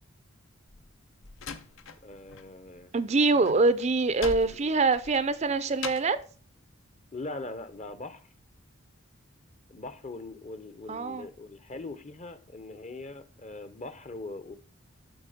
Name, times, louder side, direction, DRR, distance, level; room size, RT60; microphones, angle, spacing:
Slam, 0.7-2.5 2.8-6.2, left 5 dB, 65° left, 0.8 m, -41 dB
voice 1, 2.0-2.9 4.5-4.6 7.1-8.3 9.7-14.6, left 2 dB, 35° left, 0.8 m, -41 dB
voice 2, 2.9-6.2 10.9-11.3, right 3 dB, 35° right, 0.5 m, -24 dB
12.0 x 4.6 x 5.0 m
head